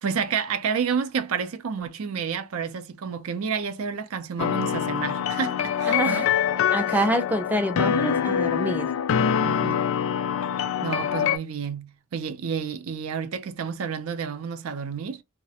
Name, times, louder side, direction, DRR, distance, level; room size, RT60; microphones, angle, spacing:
voice 1, 0.0-6.2 6.9-7.1 9.4-9.8 10.8-15.2, right 6 dB, 85° right, 0.5 m, -30 dB
sound 1, 4.4-11.4, left 8 dB, 75° left, 0.3 m, -25 dB
voice 2, 5.9-6.3 6.7-8.9, right 1 dB, 10° right, 0.4 m, -26 dB
2.4 x 2.0 x 2.7 m
head